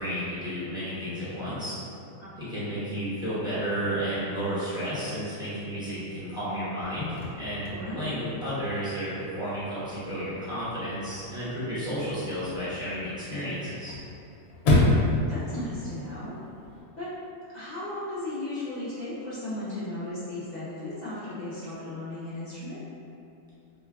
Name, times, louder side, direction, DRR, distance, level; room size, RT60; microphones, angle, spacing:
voice 1, 0.0-1.8 2.4-14.0, equal, 5° right, -13 dB, 0.7 m, -32 dB
voice 2, 2.2-2.5 7.7-8.2 14.6-16.4 17.0-17.1 17.5-22.8, left 1 dB, 55° left, -12 dB, 0.5 m, -36 dB
Chirp tweet / Car / Slam, 6.8-16.8, left 1 dB, 90° left, 1.0 m, -31 dB
3.2 x 2.1 x 2.3 m, 2.7 s
omnidirectional pair, 1.4 m